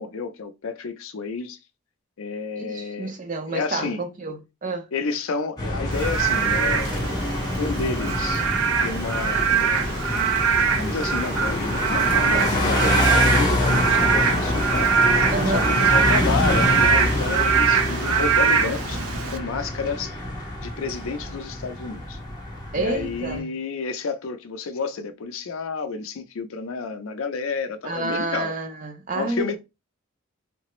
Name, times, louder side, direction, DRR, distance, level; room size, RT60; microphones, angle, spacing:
voice 1, 0.0-1.6 2.2-3.2 3.5-4.0 4.7-7.3 7.6-8.4 8.8-10.3 10.6-14.9 15.5-19.0 19.3-20.2 20.6-22.2 22.8-28.5 29.1-29.6, left 4 dB, 75° left, 0.4 m, -30 dB
voice 2, 2.6-4.9 12.3-12.4 15.3-15.7 22.7-23.5 27.8-29.6, right 3 dB, 35° right, 0.5 m, -29 dB
sound 1, 5.6-23.4, left 1 dB, 20° left, 0.8 m, -26 dB
Frog / Rain, 5.9-19.4, right 6 dB, 90° right, 0.5 m, -23 dB
3.2 x 2.0 x 2.9 m
head